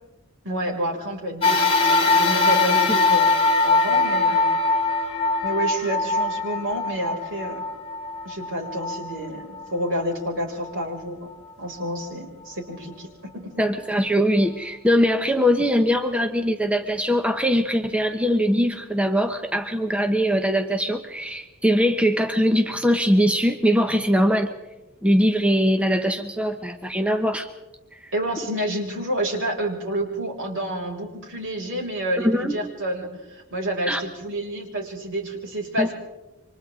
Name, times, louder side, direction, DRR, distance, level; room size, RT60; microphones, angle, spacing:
voice 1, 0.4-3.3 3.6-4.6 5.4-7.7 8.2-11.3 11.6-13.6 28.1-35.9, right 1 dB, 60° right, 0 dB, 5.8 m, -29 dB
sound 1, 1.4-10.0 10.6-10.7 11.8-11.9, left 3 dB, 25° left, 5.7 m, -22 dB
voice 2, 13.6-24.5 25.0-27.5 27.9-28.0 32.2-32.6 33.9-34.0 35.8-35.9, equal, 5° right, 6 dB, 0.9 m, -21 dB
29.0 x 25.0 x 3.7 m, 1.1 s
head